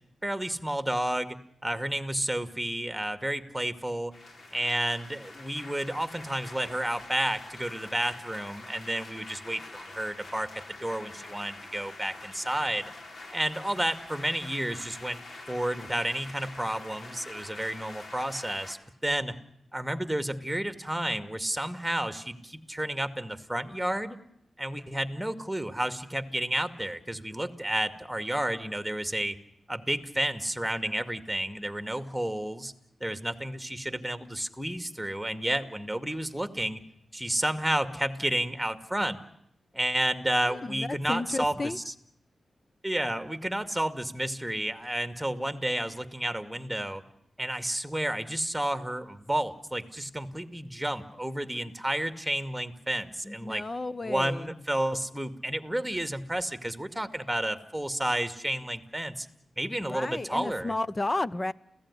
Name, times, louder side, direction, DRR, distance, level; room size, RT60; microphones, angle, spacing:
voice 1, 0.2-4.1 4.5-10.5 10.8-12.9 13.3-19.3 19.7-24.2 24.6-29.3 29.7-32.7 33.0-36.8 37.1-39.2 39.7-41.9 42.8-47.0 47.4-53.6 54.0-59.3 59.6-60.7, right 1 dB, 5° right, 10 dB, 2.3 m, -31 dB
sound 1, 4.1-18.7, left 2 dB, 60° left, 4.6 m, -46 dB
voice 2, 40.5-41.8 53.2-54.5 59.8-61.5, left 2 dB, 30° left, 16 dB, 1.0 m, -32 dB
29.5 x 16.0 x 10.0 m, 0.74 s
cardioid pair, 75°, 0 cm